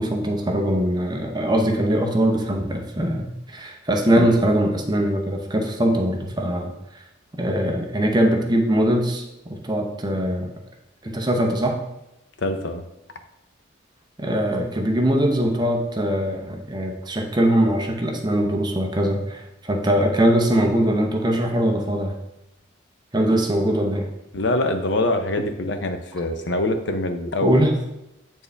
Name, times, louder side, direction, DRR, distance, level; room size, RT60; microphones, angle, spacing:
voice 1, 0.0-7.0 7.4-10.5 11.0-11.8 14.2-22.1 23.1-24.1 27.4-27.8, right 1 dB, 20° right, 2 dB, 0.7 m, -22 dB
voice 2, 12.4-12.8 24.3-27.7, left 1 dB, 60° left, 7 dB, 0.6 m, -24 dB
8.3 x 4.4 x 3.4 m, 0.88 s
head